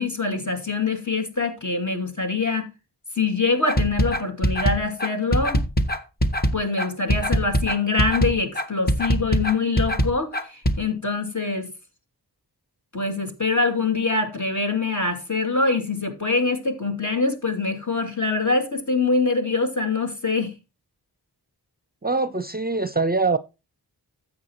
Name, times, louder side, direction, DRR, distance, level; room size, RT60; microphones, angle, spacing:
voice 1, 0.0-2.7 3.1-5.6 6.5-11.7 12.9-20.5, left 3 dB, 45° left, 2.6 m, -24 dB
sound 1, 3.7-10.8, equal, 25° left, 1.2 m, -22 dB
voice 2, 22.0-23.4, right 3 dB, 25° right, 0.7 m, -23 dB
13.0 x 8.0 x 3.0 m
cardioid pair, 45°, 41 cm